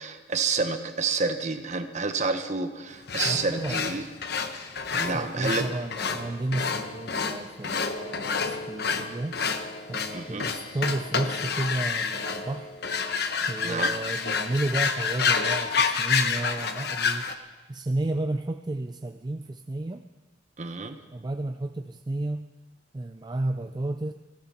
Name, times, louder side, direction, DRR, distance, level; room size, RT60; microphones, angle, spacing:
voice 1, 0.0-4.1 4.9-5.8 10.1-10.5 13.6-13.9 20.6-21.0, right 4 dB, 40° right, 8 dB, 1.1 m, -29 dB
sound 1, 3.1-17.3, left 5 dB, 65° left, 1.0 m, -29 dB
voice 2, 3.2-3.9 4.9-9.4 9.9-12.8 13.5-17.4 17.7-20.0 21.1-22.5 22.9-24.1, right 2 dB, 25° right, 7 dB, 0.4 m, -32 dB
19.0 x 16.0 x 4.3 m, 1.2 s
head